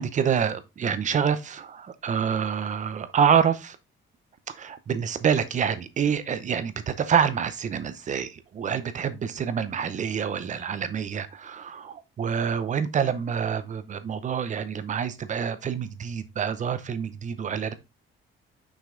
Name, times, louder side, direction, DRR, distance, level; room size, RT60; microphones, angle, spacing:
voice 1, 0.0-3.8 4.5-17.7, right 7 dB, 35° right, 0.7 m, -27 dB
6.3 x 5.2 x 3.8 m
cardioid pair, 165°, 21 cm